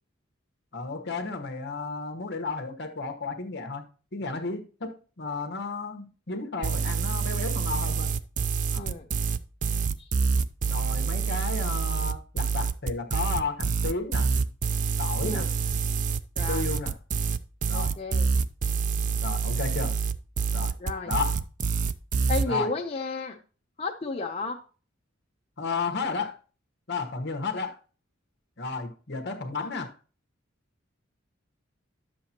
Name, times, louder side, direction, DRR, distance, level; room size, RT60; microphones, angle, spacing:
voice 1, 0.7-3.8 4.1-8.1 8.7-8.9 10.7-14.3 15.0-15.5 16.5-16.9 17.7-18.0 19.2-20.0 20.5-20.7 21.0-21.4 22.4-22.7 25.6-26.3 26.9-27.8 28.6-29.9, left 4 dB, 55° left, 1.2 m, -33 dB
sound 1, 6.6-22.5, right 5 dB, 40° right, 0.4 m, -27 dB
voice 2, 16.4-16.7 17.7-18.3 20.8-21.1 22.3-23.4 23.8-24.6, left 3 dB, 30° left, 0.8 m, -33 dB
10.5 x 7.7 x 2.9 m
head